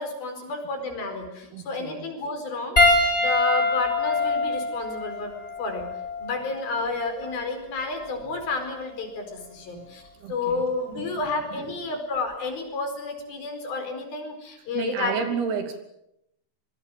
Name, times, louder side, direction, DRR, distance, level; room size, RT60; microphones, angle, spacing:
voice 1, 0.0-5.9 6.2-15.4, left 3 dB, 70° left, 6 dB, 6.5 m, -31 dB
voice 2, 1.5-2.1 10.2-10.6 11.0-11.2 11.5-11.7 14.7-15.8, right 6 dB, 80° right, 6 dB, 4.8 m, -31 dB
Piano, 2.8-7.4 8.4-8.5 10.5-10.6, left 2 dB, 15° left, 6.5 m, -24 dB
25.5 x 23.5 x 7.7 m, 0.81 s
omnidirectional pair, 4.5 m